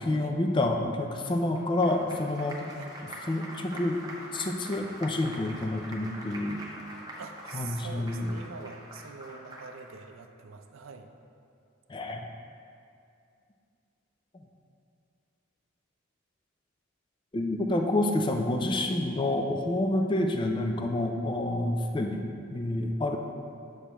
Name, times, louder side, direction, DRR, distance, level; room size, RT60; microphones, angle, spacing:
voice 1, 0.0-2.7 3.0-4.0 4.3-6.6 7.5-8.3 11.9-12.3 14.3-14.4 17.3-23.2, left 1 dB, 20° left, 4 dB, 0.4 m, -28 dB
Applause, 1.3-10.0, right 1 dB, 20° right, 0.7 m, -44 dB
voice 2, 7.2-11.1, right 5 dB, 70° right, 6 dB, 0.5 m, -45 dB
8.0 x 6.4 x 3.0 m, 2.5 s
head